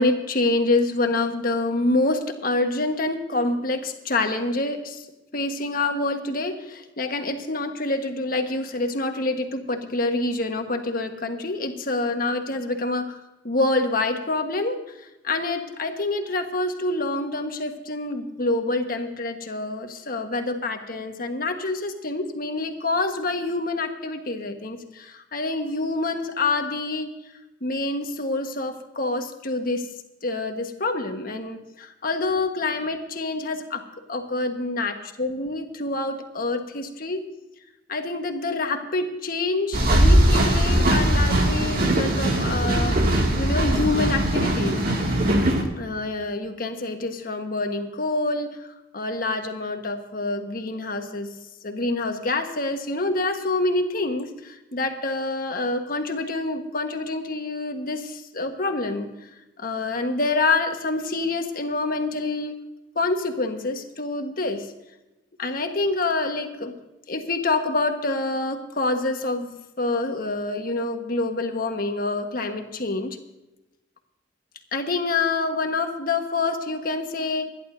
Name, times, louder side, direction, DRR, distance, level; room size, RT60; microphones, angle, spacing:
voice 1, 0.0-5.0 5.3-13.2 13.4-14.8 15.2-27.1 27.6-29.9 30.2-33.8 34.1-37.3 37.9-43.0 43.4-44.9 45.7-48.6 48.9-51.3 51.6-59.1 59.6-62.5 62.9-64.7 65.4-66.7 67.1-69.5 69.8-73.2 74.7-77.5, left 2 dB, 50° left, 5 dB, 1.4 m, -26 dB
sound 1, 39.7-45.6, right 1 dB, 55° right, 2.3 m, -20 dB
26.5 x 11.5 x 2.7 m, 1.0 s
head